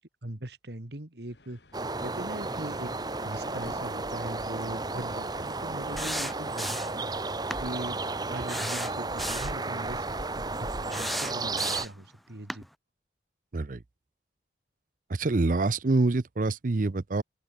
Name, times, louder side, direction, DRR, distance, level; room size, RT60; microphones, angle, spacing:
voice 1, 0.0-1.6 2.0-2.9 3.2-7.0 7.6-8.0 8.3-12.6, right 1 dB, 60° right, 2.1 m, -40 dB
sound 1, 1.3-9.7, left 1 dB, 60° left, 2.4 m, -54 dB
sound 2, 1.7-11.9, right 3 dB, 20° right, 1.2 m, -33 dB
sound 3, 6.0-7.0 7.5-7.6 8.5-9.6 10.9-12.0 12.5-12.6, equal, ahead, 1.4 m, -34 dB
voice 2, 15.2-17.2, right 3 dB, 45° right, 0.6 m, -26 dB
open air
head